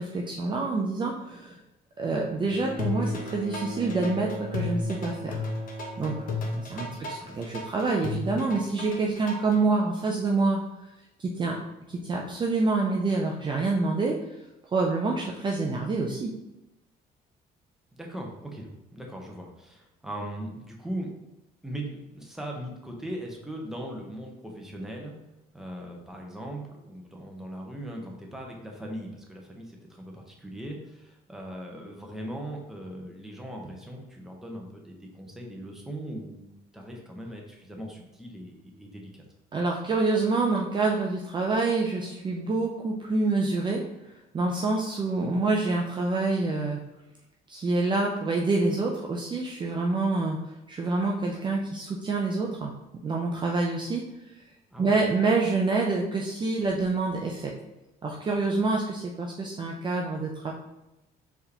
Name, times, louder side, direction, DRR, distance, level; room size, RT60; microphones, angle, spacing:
voice 1, 0.0-1.6 2.0-5.4 6.0-6.2 6.5-10.6 11.2-11.6 12.0-14.2 14.7-16.3 39.5-43.8 44.3-46.8 47.5-52.7 53.0-54.0 54.8-57.5 58.0-60.5, right 3 dB, 30° right, -1 dB, 0.5 m, -27 dB
Bowed string instrument, 2.4-7.8 8.9-9.0, equal, 90° left, 0.9 m, -40 dB
sound 1, 2.8-9.6, left 3 dB, 55° left, 0.9 m, -33 dB
voice 2, 7.0-7.4 17.9-21.1 21.6-25.2 25.5-39.2 54.7-55.0, right 1 dB, ahead, 0 dB, 0.9 m, -39 dB
4.4 x 3.4 x 2.9 m, 0.96 s
cardioid pair, 110°, 17 cm